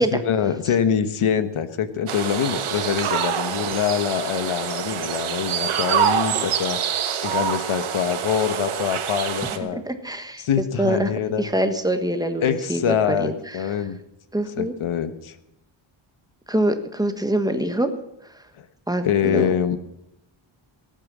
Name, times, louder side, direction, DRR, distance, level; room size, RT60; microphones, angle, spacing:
voice 1, 0.0-6.8 7.2-9.8 10.4-11.5 12.4-14.0 14.5-15.4 18.6-18.7 19.0-19.8, left 8 dB, 75° left, 11 dB, 1.3 m, -24 dB
sound 1, 2.1-9.6, right 8 dB, 75° right, 1.4 m, -26 dB
voice 2, 9.7-10.4 10.8-13.3 14.3-14.7 16.5-17.9 18.9-19.5, right 1 dB, 10° right, 7 dB, 1.3 m, -24 dB
18.5 x 9.1 x 6.1 m, 0.85 s
wide cardioid pair, 140°, 49 cm